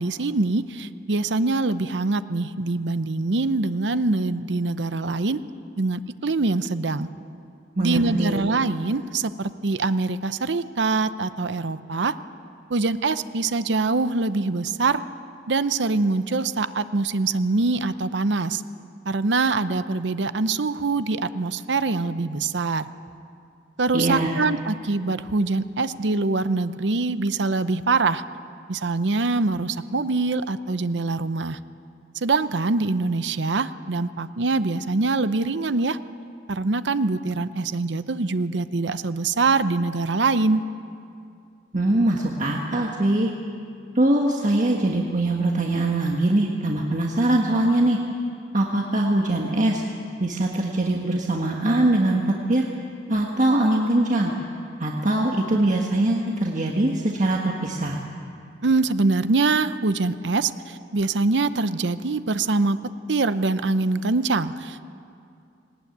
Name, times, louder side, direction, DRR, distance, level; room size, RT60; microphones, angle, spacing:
voice 1, 0.0-5.4 5.8-7.1 7.8-12.2 12.7-15.1 15.5-18.6 19.1-22.9 23.8-28.2 28.7-31.6 32.2-36.0 36.5-40.6 58.6-64.9, right 3 dB, 70° right, 13 dB, 0.7 m, -24 dB
voice 2, 7.8-8.4 23.9-24.4 41.7-43.3 43.9-48.0 48.5-49.8 50.2-52.6 53.1-54.3 54.8-58.0, right 1 dB, 45° right, 0 dB, 1.5 m, -22 dB
19.5 x 19.0 x 9.3 m, 2.4 s
head